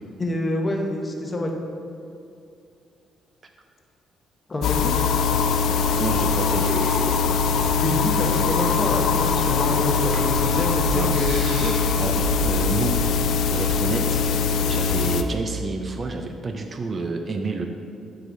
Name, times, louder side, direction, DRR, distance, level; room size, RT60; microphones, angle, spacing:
voice 1, 0.2-1.5 4.5-4.9 7.8-11.7, left 1 dB, 25° left, 2 dB, 0.8 m, -27 dB
sound 1, 4.6-15.2, left 6 dB, 75° left, 0.3 m, -22 dB
sound 2, 5.1-12.8, right 3 dB, 75° right, 0.9 m, -34 dB
voice 2, 6.0-6.8 10.9-11.2 12.0-12.1 12.4-12.9 13.5-17.7, right 3 dB, 40° right, 5 dB, 0.4 m, -29 dB
8.9 x 4.8 x 2.6 m, 2.5 s
cardioid pair, 90°, 0 cm